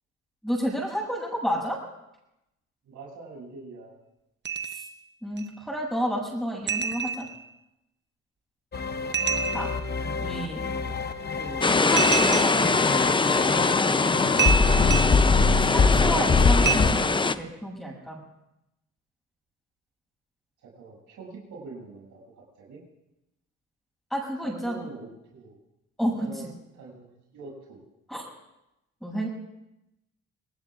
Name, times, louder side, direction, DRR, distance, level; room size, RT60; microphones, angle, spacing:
voice 1, 0.4-1.8 4.7-4.9 5.2-7.3 9.5-9.7 10.2-10.6 11.4-13.6 15.7-18.2 24.1-24.8 26.0-26.3 28.1-28.3 29.0-29.3, equal, ahead, -5 dB, 7.3 m, -31 dB
voice 2, 2.8-4.0 20.6-22.8 24.4-25.6 26.2-26.5 26.7-27.8, right 3 dB, 75° right, -3 dB, 7.4 m, -44 dB
sound 1, 4.4-4.9 5.4-5.5 6.7-7.5 9.1-9.9 12.0-12.8 13.6-13.8 14.4-15.3 16.6-16.8, right 6 dB, 35° right, 1.0 m, -28 dB
sound 2, 8.7-16.9, left 4 dB, 35° left, 1.0 m, -25 dB
sound 3, 11.6-17.3, left 3 dB, 15° left, 0.6 m, -23 dB
27.5 x 19.0 x 2.5 m, 0.90 s
cardioid pair, 90°, 30 cm